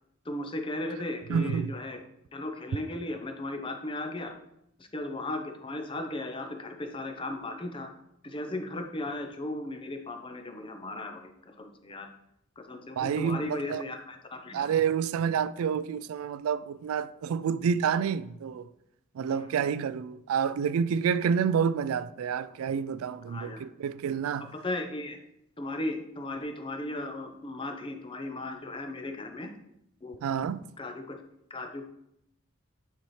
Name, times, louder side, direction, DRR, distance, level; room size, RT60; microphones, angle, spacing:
voice 1, 0.2-2.0 2.3-4.4 4.8-7.9 8.2-12.1 12.6-14.7 19.3-19.6 23.3-23.6 24.5-25.2 25.6-29.5 30.0-30.2 30.8-31.2 31.5-31.9, left 2 dB, 25° left, 0.6 m, -36 dB
voice 2, 1.3-1.7 13.0-13.8 14.5-18.7 19.2-24.5 30.2-30.6, right 7 dB, 80° right, 0.3 m, -28 dB
9.3 x 4.2 x 3.2 m
head